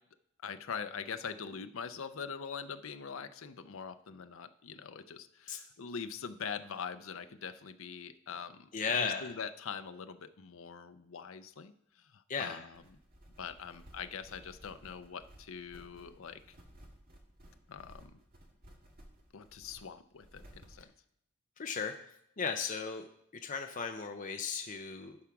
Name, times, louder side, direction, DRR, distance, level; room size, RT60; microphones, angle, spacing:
voice 1, 0.4-12.8 13.4-16.4 17.7-18.2 19.3-20.9, left 6 dB, 85° left, 10 dB, 0.6 m, -43 dB
voice 2, 8.7-9.3 12.3-12.6 21.6-21.9 22.4-23.1 23.4-25.2, left 5 dB, 40° left, 5 dB, 0.6 m, -35 dB
sound 1, 12.7-20.8, equal, 50° right, 1.9 m, -57 dB
12.0 x 4.7 x 5.9 m, 0.76 s
head